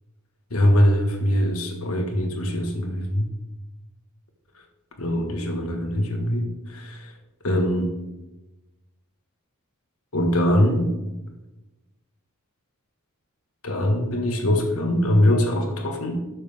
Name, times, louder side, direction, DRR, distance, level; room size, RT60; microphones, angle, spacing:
voice 1, 0.5-3.3 5.0-7.1 7.4-7.9 10.1-11.0 13.6-16.2, equal, 80° left, 3 dB, 1.6 m, -22 dB
12.0 x 6.4 x 3.5 m, 1.0 s
head